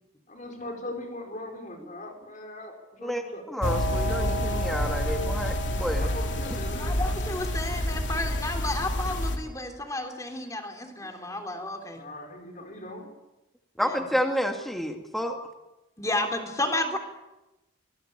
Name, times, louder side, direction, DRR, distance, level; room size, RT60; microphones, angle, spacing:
voice 1, 0.3-3.5 6.0-7.0 11.9-13.1, left 1 dB, 40° left, 4 dB, 4.3 m, -40 dB
voice 2, 3.0-6.1 6.5-6.6 13.8-15.4, equal, ahead, 4 dB, 1.9 m, -30 dB
sound 1, 3.6-9.4, equal, 70° left, 3.1 m, -28 dB
voice 3, 6.7-12.0 13.8-14.1 16.0-17.0, left 2 dB, 15° left, 4 dB, 3.3 m, -32 dB
25.5 x 20.0 x 8.7 m, 1.0 s
head